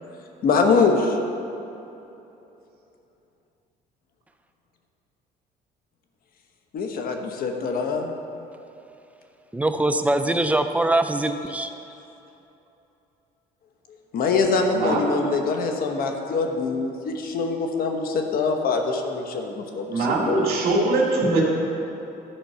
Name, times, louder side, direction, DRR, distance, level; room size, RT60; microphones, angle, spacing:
voice 1, 0.4-1.2 6.7-8.1 14.1-20.5, left 4 dB, 60° left, 4 dB, 1.1 m, -24 dB
voice 2, 9.5-11.7, right 1 dB, 10° right, 7 dB, 0.4 m, -22 dB
voice 3, 14.7-15.2 19.9-21.4, right 2 dB, 65° right, -8 dB, 2.0 m, -22 dB
12.0 x 4.5 x 5.6 m, 2.9 s
cardioid pair, 110°, 17 cm